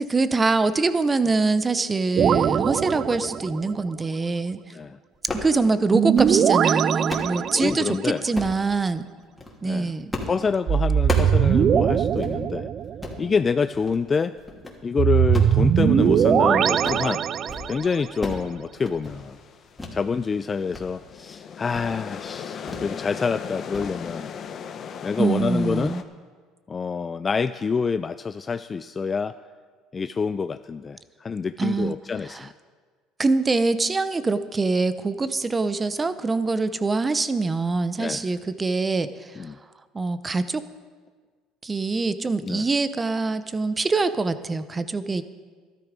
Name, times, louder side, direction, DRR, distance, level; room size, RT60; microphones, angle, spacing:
voice 1, 0.0-4.6 5.3-9.0 9.6-10.2 25.2-26.0 31.6-31.9 32.3-32.5 33.2-39.3 39.9-40.6 41.6-45.2, right 3 dB, 20° right, 13 dB, 0.8 m, -24 dB
sound 1, 2.2-3.7 5.9-8.0 10.7-13.2 15.0-18.0, right 9 dB, 45° right, 0.4 m, -21 dB
sound 2, 5.1-5.5 6.0-6.4 6.8-7.4 8.3-8.6 9.2-9.5 10.1-10.4 10.7-11.4 11.8-11.9 12.2-12.3 12.8-13.2 13.7-14.0 14.4-14.8 15.2-16.4 16.7-17.1 17.4-17.7 17.9-18.5 18.7-19.2 19.8-20.0 20.4-20.8 21.2-21.3 21.7-21.9 22.7-22.9 23.2-23.4 23.7-23.9, left 2 dB, 15° left, 2.8 m, -34 dB
voice 2, 7.6-8.2 9.6-9.9 10.3-12.7 13.2-14.3 14.8-17.2 17.7-19.4 19.9-24.3 25.0-26.0 26.7-29.3 29.9-32.5 38.0-38.2 39.4-39.6 42.4-42.7, left 5 dB, 30° left, 12 dB, 0.4 m, -27 dB
sound 3, 19.1-26.0, left 7 dB, 45° left, 1.0 m, -38 dB
13.0 x 12.0 x 5.1 m, 1.5 s
supercardioid pair, 90°, 0 cm